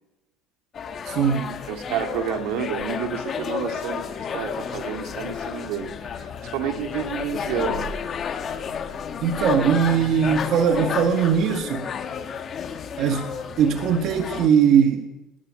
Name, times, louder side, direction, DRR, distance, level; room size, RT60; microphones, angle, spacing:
sound 1, 0.7-14.5, left 7 dB, 35° left, 1.9 m, -31 dB
voice 1, 1.0-1.6 9.2-11.9 13.0-15.1, right 7 dB, 50° right, 1.7 m, -20 dB
voice 2, 1.7-7.9, right 9 dB, 70° right, 2.4 m, -30 dB
Thunder / Rain, 4.2-12.0, left 3 dB, 85° left, 6.2 m, -44 dB
21.0 x 20.0 x 6.5 m
cardioid pair, 135°, 0 cm